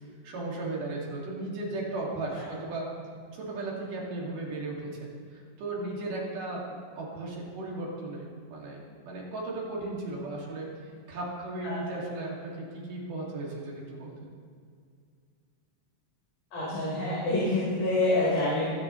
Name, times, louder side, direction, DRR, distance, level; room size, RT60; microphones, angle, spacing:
voice 1, 0.2-2.9 3.3-8.8 9.0-10.7 11.1-14.3, right 2 dB, 75° right, -4 dB, 3.9 m, -36 dB
voice 2, 16.5-18.7, left 2 dB, 75° left, -10 dB, 5.9 m, -26 dB
24.0 x 11.5 x 3.1 m, 2.2 s
omnidirectional pair, 3.8 m